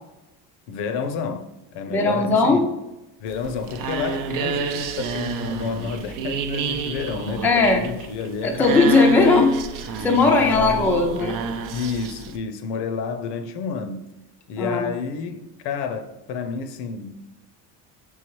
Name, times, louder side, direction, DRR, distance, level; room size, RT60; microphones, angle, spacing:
voice 1, 0.7-2.7 3.2-8.9 9.9-10.9 11.7-14.1 14.5-17.2, left 5 dB, 75° left, 0.6 m, -30 dB
voice 2, 1.9-2.6 7.4-7.8 8.4-9.5 10.0-11.4 14.6-14.8, left 3 dB, 5° left, 0.3 m, -18 dB
sound 1, 3.3-12.4, right 5 dB, 50° right, 0.5 m, -29 dB
4.6 x 3.5 x 3.1 m
cardioid pair, 130°, 41 cm